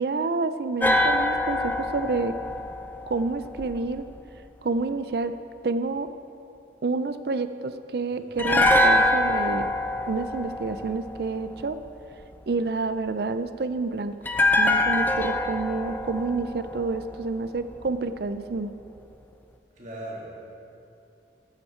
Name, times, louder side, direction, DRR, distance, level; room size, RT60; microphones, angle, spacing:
voice 1, 0.0-2.3 3.1-4.0 4.6-5.3 5.6-6.1 6.8-9.7 10.1-11.8 12.5-14.2 14.6-18.7, right 3 dB, 60° right, 11 dB, 0.4 m, -28 dB
sound 1, 0.8-4.0 8.4-11.6 14.3-17.5 17.7-17.9, left 1 dB, 10° left, 0.4 m, -24 dB
voice 2, 8.1-8.6 19.7-20.3, right 1 dB, 40° right, -4 dB, 2.3 m, -39 dB
14.5 x 8.5 x 4.4 m, 2.7 s
head